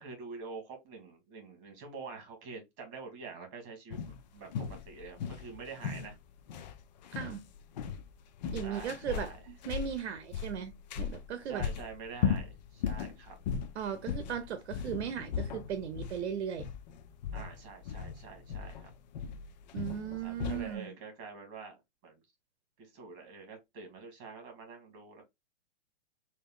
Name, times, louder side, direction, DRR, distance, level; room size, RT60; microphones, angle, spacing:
voice 1, 0.0-4.5 4.9-6.2 8.6-9.4 11.4-13.4 17.3-18.9 20.2-21.8 22.0-22.2 22.8-25.2, right 4 dB, 30° right, 2.1 m, -46 dB
sound 1, 3.9-20.8, left 7 dB, 40° left, 0.4 m, -38 dB
voice 2, 7.1-7.4 8.5-10.7 11.0-11.7 13.8-16.7 19.7-20.9, right 8 dB, 70° right, 0.8 m, -37 dB
3.6 x 2.7 x 3.6 m
hypercardioid pair, 155°, 34 cm